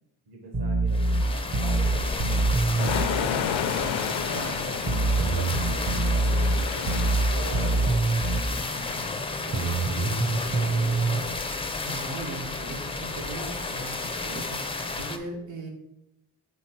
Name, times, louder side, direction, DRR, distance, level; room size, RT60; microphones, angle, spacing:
voice 1, 0.3-7.0 7.3-7.9 9.2-11.4, right 2 dB, 60° right, 1 dB, 1.1 m, -42 dB
sound 1, 0.5-3.1 4.9-8.5 9.5-11.2, right 2 dB, 35° right, 0.7 m, -24 dB
sound 2, 0.9-15.2, left 3 dB, 15° left, 0.4 m, -32 dB
sound 3, 2.8-8.0, left 8 dB, 80° left, 0.6 m, -32 dB
voice 2, 4.3-4.6 8.4-9.1 11.8-15.7, right 2 dB, 85° right, 0 dB, 1.5 m, -39 dB
6.2 x 3.8 x 4.4 m, 0.87 s
wide cardioid pair, 145°, 44 cm